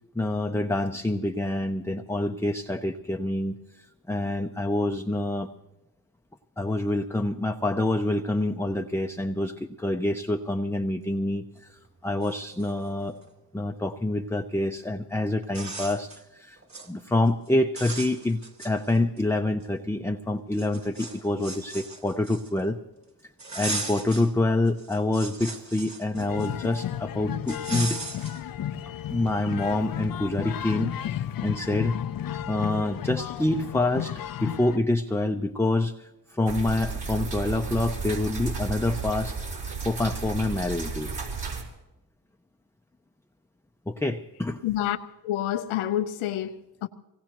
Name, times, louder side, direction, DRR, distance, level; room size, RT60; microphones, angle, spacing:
voice 1, 0.1-5.5 6.6-13.2 13.5-16.6 16.9-22.8 23.5-28.0 29.1-30.9 31.4-32.0 32.5-39.4 39.8-41.1 43.9-44.6, left 2 dB, 5° left, 0.7 m, -27 dB
sound 1, 11.8-11.9 12.2-13.3 14.8-14.9 15.4-16.2 16.6-16.9 17.3-17.5 17.7-19.2 19.6-19.7 20.5-22.7 23.4-24.3 24.7-26.8 27.5-28.4, right 3 dB, 35° right, 3.0 m, -37 dB
sound 2, 26.1-34.8, left 10 dB, 45° left, 0.7 m, -33 dB
sound 3, 36.5-41.6, right 4 dB, 55° right, 4.4 m, -33 dB
voice 2, 44.6-45.0 45.2-46.9, left 12 dB, 80° left, 0.8 m, -28 dB
24.5 x 18.0 x 3.1 m
supercardioid pair, 50°, 47 cm